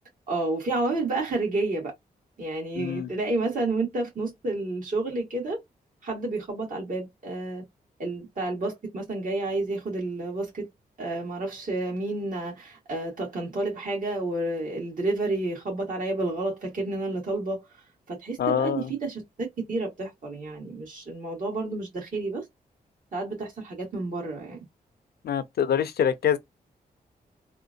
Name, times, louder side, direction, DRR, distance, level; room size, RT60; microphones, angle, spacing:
voice 1, 0.3-1.9 2.4-5.6 6.0-7.6 8.0-10.7 11.0-17.7 18.1-22.4 23.1-24.7, right 2 dB, 55° right, 2.1 m, -30 dB
voice 2, 2.8-3.1 18.4-18.9 25.2-26.4, left 8 dB, 75° left, 0.6 m, -25 dB
3.6 x 2.5 x 2.6 m
cardioid pair, 65°, 17 cm